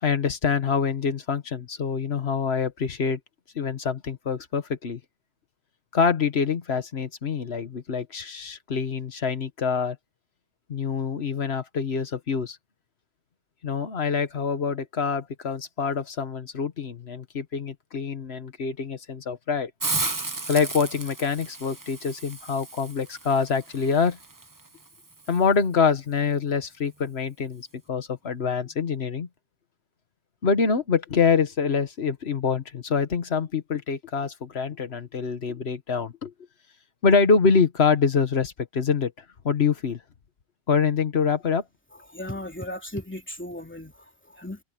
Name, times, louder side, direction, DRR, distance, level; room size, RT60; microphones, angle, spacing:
voice 1, 0.0-3.2 3.5-5.0 5.9-10.0 10.7-12.6 13.6-19.7 20.5-24.2 25.3-29.3 30.4-36.3 37.0-39.1 39.4-40.0 40.7-41.6, left 5 dB, 85° left, 1.6 m, -25 dB
Hiss, 19.8-25.4, right 3 dB, 20° right, 0.9 m, -34 dB
voice 2, 42.1-44.6, left 1 dB, 10° left, 3.0 m, -36 dB
omnidirectional pair, 1.0 m